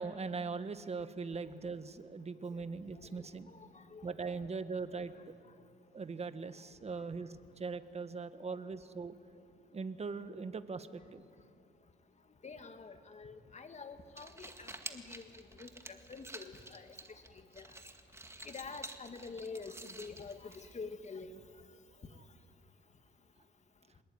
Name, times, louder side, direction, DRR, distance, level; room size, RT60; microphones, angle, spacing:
voice 1, 0.0-3.5 4.0-5.1 5.9-9.1 9.7-11.2 22.2-22.3, right 4 dB, 30° right, 11 dB, 1.4 m, -40 dB
voice 2, 3.5-4.1 8.5-8.6 12.4-15.2 15.6-16.9 17.6-17.7 18.4-21.3, left 4 dB, 35° left, 8 dB, 2.1 m, -47 dB
sound 1, 14.0-21.0, right 2 dB, 15° right, 2.0 m, -50 dB
25.0 x 21.0 x 9.6 m, 2.4 s
cardioid pair, 90°, 20 cm